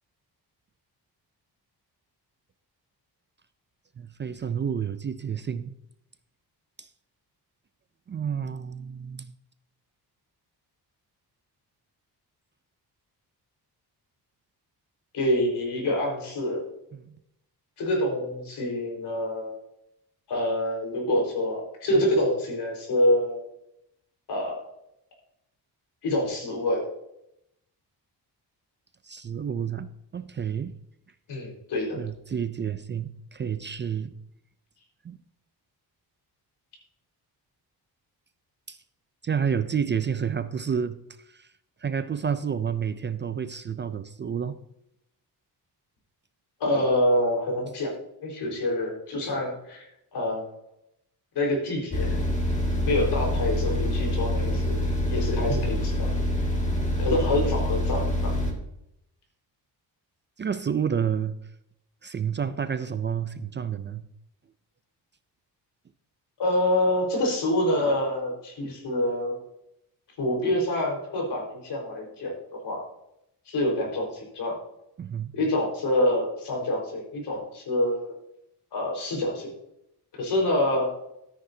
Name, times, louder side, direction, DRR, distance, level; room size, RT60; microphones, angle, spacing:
voice 1, 4.0-5.7 6.8-6.9 8.1-9.3 16.9-17.1 29.0-30.7 31.9-34.1 35.0-35.2 38.7-38.8 39.2-41.0 41.3-41.5 41.8-44.6 49.2-49.3 55.5-55.7 60.4-61.4 62.0-64.1 75.0-75.3, right 7 dB, 30° right, 0.4 m, -30 dB
voice 2, 15.1-16.6 17.8-19.6 20.3-23.5 24.3-24.6 26.0-26.9 31.3-32.0 46.6-47.9 48.2-50.5 51.3-52.2 52.9-54.8 55.1-56.1 57.0-58.3 66.4-69.4 70.2-72.8 73.5-74.5 75.3-78.1 78.7-79.5 80.2-80.9, left 1 dB, 75° left, 4.6 m, -26 dB
sound 1, 51.9-58.5, left 1 dB, 20° left, 2.0 m, -26 dB
13.0 x 9.7 x 2.7 m
cardioid pair, 140°, 40 cm